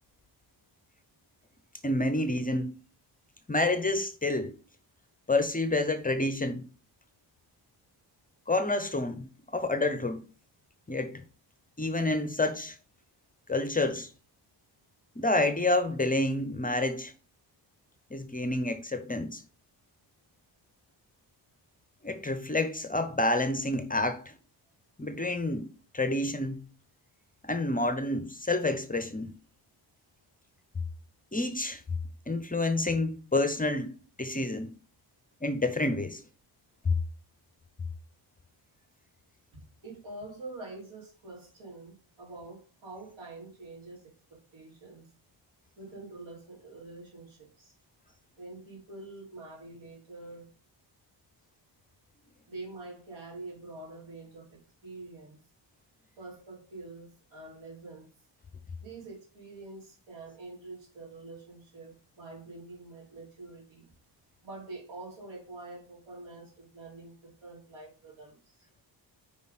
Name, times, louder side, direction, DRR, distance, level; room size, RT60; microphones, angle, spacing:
voice 1, 1.8-2.8 3.5-4.5 5.3-6.6 8.5-10.2 10.9-11.2 11.8-12.8 13.5-14.1 15.2-17.1 18.1-19.4 22.0-24.3 25.0-25.7 25.9-26.6 27.4-29.3 31.3-31.8 32.3-34.7 35.4-36.2 36.8-37.0, left 2 dB, 20° left, 0.7 m, -28 dB
voice 2, 39.8-45.1 45.8-47.7 48.1-50.5 52.5-55.4 56.2-58.1 58.8-63.9 64.4-68.6, right 2 dB, 85° right, 3.2 m, -46 dB
5.2 x 5.1 x 4.1 m
cardioid pair, 90°, 46 cm